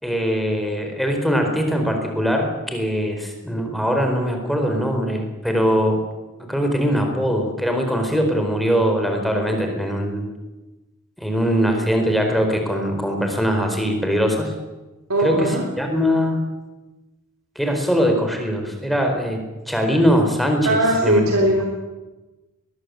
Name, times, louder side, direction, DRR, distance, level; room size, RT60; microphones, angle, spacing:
voice 1, 0.0-6.0 6.5-10.3 11.2-14.5 15.2-16.4 17.6-19.4 19.7-21.2, equal, ahead, 3 dB, 4.4 m, -21 dB
voice 2, 15.1-15.6 20.6-21.6, right 1 dB, 65° right, 1 dB, 3.4 m, -19 dB
22.0 x 20.0 x 8.3 m, 1.1 s
head